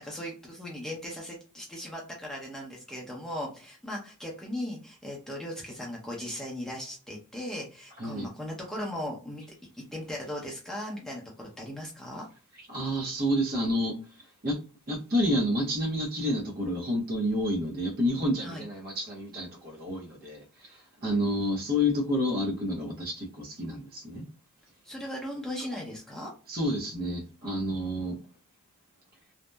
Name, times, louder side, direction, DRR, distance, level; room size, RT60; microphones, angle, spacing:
voice 1, 0.0-9.4 9.8-12.3 18.4-18.7 24.8-26.3, left 1 dB, ahead, 0.5 m, -38 dB
voice 2, 12.7-13.9 14.4-14.6 14.9-20.4 21.0-24.3 26.5-28.2, equal, 45° right, 0.7 m, -29 dB
2.7 x 2.1 x 2.2 m
head